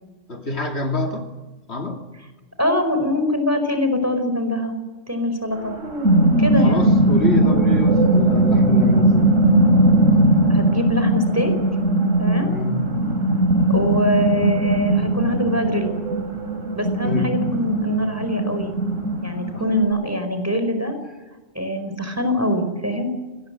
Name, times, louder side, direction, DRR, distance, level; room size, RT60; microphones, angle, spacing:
voice 1, 0.3-1.3 1.7-2.0 6.4-9.4 10.1-10.2 12.4-13.0 17.0-17.4 19.5-19.6, left 2 dB, 60° left, 3 dB, 2.9 m, -27 dB
voice 2, 2.6-4.7 5.1-5.8 6.4-6.9 10.5-11.5 12.2-12.5 13.7-15.9 16.7-18.7 19.2-21.0 21.5-23.1, left 1 dB, 10° right, 7 dB, 4.8 m, -23 dB
sound 1, 5.6-19.8, right 1 dB, 80° right, 4.6 m, -19 dB
28.0 x 19.5 x 7.8 m, 1.3 s
omnidirectional pair, 1.3 m